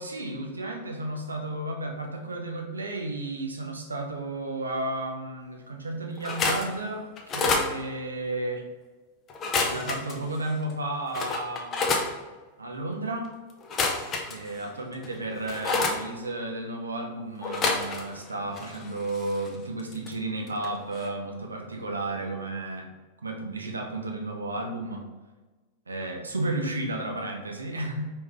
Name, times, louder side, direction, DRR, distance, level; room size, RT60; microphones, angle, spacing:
voice 1, 0.0-7.1 7.3-8.6 9.7-11.8 12.6-13.3 14.3-22.9 23.2-25.0 25.9-28.1, right 2 dB, 75° right, 2 dB, 0.7 m, -33 dB
sound 1, 6.2-6.7 7.2-7.7 9.3-10.2 10.7-10.8 11.1-12.1 13.6-14.6 15.0-16.0 17.4-18.3 18.5-20.1 20.5-20.7 21.0-21.1, left 3 dB, 30° left, 0.6 m, -28 dB
4.8 x 3.3 x 3.2 m, 1.2 s
figure-of-eight pair, 90°, 0 cm